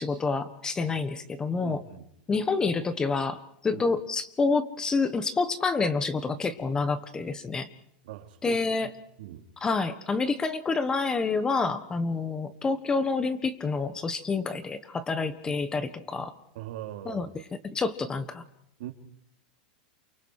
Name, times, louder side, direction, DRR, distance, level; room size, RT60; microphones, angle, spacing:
voice 1, 0.0-1.8 2.3-7.7 8.4-8.9 9.6-16.3 17.0-17.3 17.6-18.4, left 4 dB, 15° left, 13 dB, 1.3 m, -28 dB
voice 2, 1.6-2.1 3.7-3.9 8.0-8.9 9.2-9.5 16.5-17.3 18.8-18.9, right 13 dB, 70° right, 4 dB, 3.2 m, -41 dB
28.5 x 24.5 x 4.9 m, 0.73 s
supercardioid pair, 150°, 5 cm